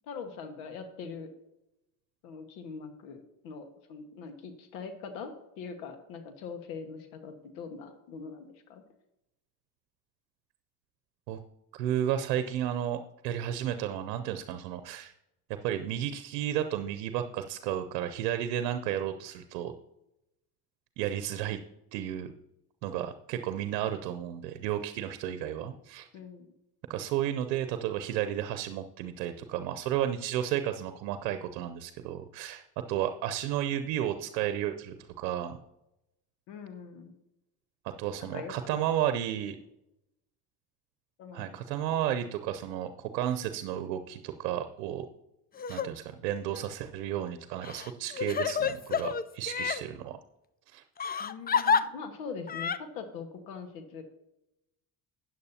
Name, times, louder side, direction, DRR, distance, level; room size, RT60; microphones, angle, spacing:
voice 1, 0.0-1.3 2.2-8.8 25.6-25.7 26.1-26.5 36.5-37.1 38.2-38.8 41.2-41.6 41.9-42.1 51.2-54.0, left 5 dB, 80° left, 7 dB, 1.6 m, -42 dB
voice 2, 11.7-15.1 15.6-19.7 21.0-21.6 21.9-22.3 22.8-26.1 26.9-35.6 37.8-39.6 41.3-45.1 45.7-50.2 50.7-50.8, right 11 dB, 85° right, 10 dB, 0.7 m, -32 dB
Crying sobbing, 45.6-45.9 46.5-46.6 47.6-49.8 51.0-51.8 52.5-52.8, left 6 dB, 20° left, 0.4 m, -29 dB
13.0 x 9.2 x 2.8 m, 0.89 s
hypercardioid pair, 65°, 48 cm